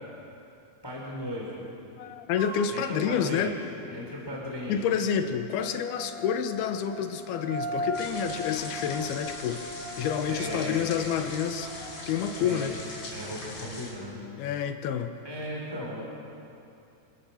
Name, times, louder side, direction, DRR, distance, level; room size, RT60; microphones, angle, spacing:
voice 1, 0.8-1.7 2.7-3.5 3.9-4.8 10.3-10.8 12.4-12.7 13.1-14.5 15.2-16.0, equal, 5° left, -3 dB, 3.6 m, -36 dB
voice 2, 2.0-3.5 4.7-9.6 10.0-12.8 14.4-15.1, left 8 dB, 90° left, 7 dB, 3.0 m, -29 dB
sound 1, 2.4-2.6 5.6-13.0, equal, 80° right, 9.2 m, -39 dB
sound 2, 7.9-13.9, left 2 dB, 70° left, 5.8 m, -41 dB
26.5 x 17.0 x 7.2 m, 2.7 s
omnidirectional pair, 4.3 m